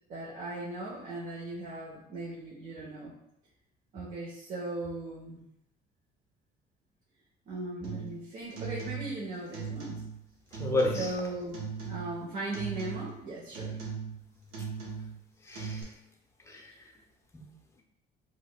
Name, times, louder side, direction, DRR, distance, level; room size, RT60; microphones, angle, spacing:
voice 1, 0.1-3.1 3.9-5.5 7.5-10.0 10.9-13.8, right 2 dB, 50° right, -5 dB, 0.8 m, -38 dB
sound 1, 7.8-8.2 8.5-9.2 9.5-10.2 10.5-11.2 11.5-12.2 12.5-13.2 13.5-14.2 14.5-15.2 15.5-15.8, right 6 dB, 90° right, 0.9 m, -38 dB
voice 2, 10.6-11.2 15.4-15.9 16.4-17.0 17.3-17.5, left 2 dB, 15° left, 1 dB, 0.6 m, -32 dB
4.8 x 2.2 x 2.2 m, 0.83 s
cardioid pair, 110°, 17 cm